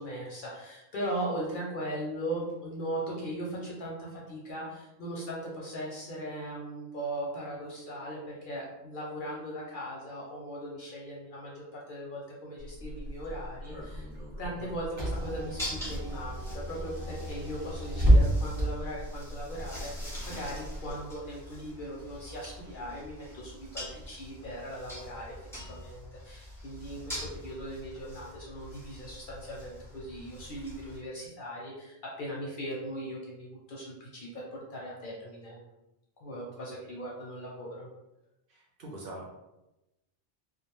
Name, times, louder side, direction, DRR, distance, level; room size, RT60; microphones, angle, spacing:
voice 1, 0.0-14.1 14.4-25.4 25.7-35.6 36.2-37.9, right 1 dB, 55° left, -3 dB, 0.6 m, -39 dB
Car / Engine, 12.6-20.9, equal, 25° right, 0.9 m, -30 dB
sound 1, 15.1-31.0, equal, 5° left, 0.5 m, -44 dB
voice 2, 38.5-39.3, right 1 dB, 60° right, -3 dB, 0.7 m, -43 dB
2.4 x 2.1 x 2.9 m, 0.96 s
omnidirectional pair, 1.2 m